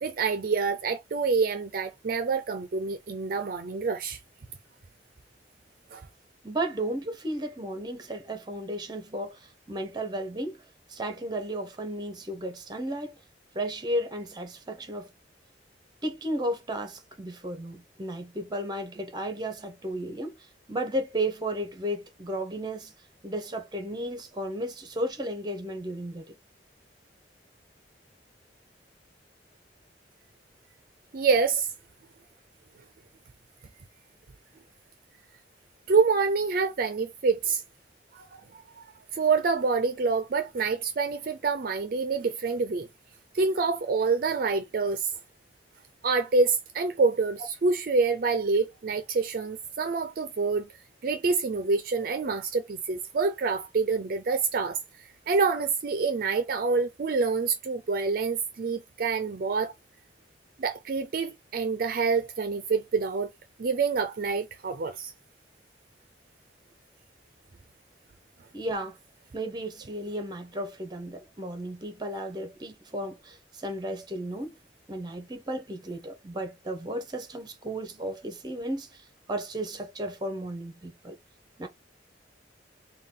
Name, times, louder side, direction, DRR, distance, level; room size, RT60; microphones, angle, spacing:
voice 1, 0.0-4.2 5.9-6.0 31.1-31.7 35.9-37.6 38.1-38.3 39.1-42.9 43.3-45.1 46.0-50.7 51.0-54.8 55.3-59.7 60.6-63.3 63.6-65.1, right 4 dB, 50° right, 0.4 m, -26 dB
voice 2, 6.4-10.6 10.9-13.2 13.5-15.1 16.0-20.4 20.7-22.9 23.2-26.3 68.5-69.0 69.3-74.6 74.9-81.2 81.6-81.7, right 1 dB, 25° right, 0.7 m, -34 dB
3.6 x 2.3 x 3.7 m
head